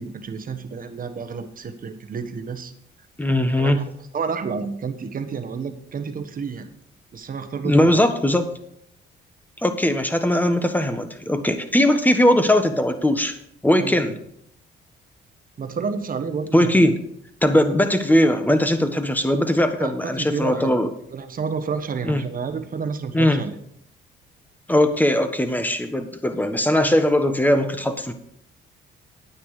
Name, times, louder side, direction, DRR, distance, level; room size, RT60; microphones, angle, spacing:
voice 1, 0.0-2.7 3.6-3.8 4.1-6.7 7.1-8.0 13.8-14.0 15.6-16.8 19.8-20.8 21.1-23.5, right 5 dB, 45° right, 9 dB, 1.4 m, -30 dB
voice 2, 3.2-3.8 7.6-8.5 9.6-13.4 13.6-14.2 16.5-17.0 17.4-20.9 22.0-22.2 23.1-23.4 24.7-28.1, left 1 dB, 10° left, 8 dB, 1.4 m, -19 dB
9.6 x 9.4 x 5.0 m, 0.70 s
cardioid pair, 90°, 20 cm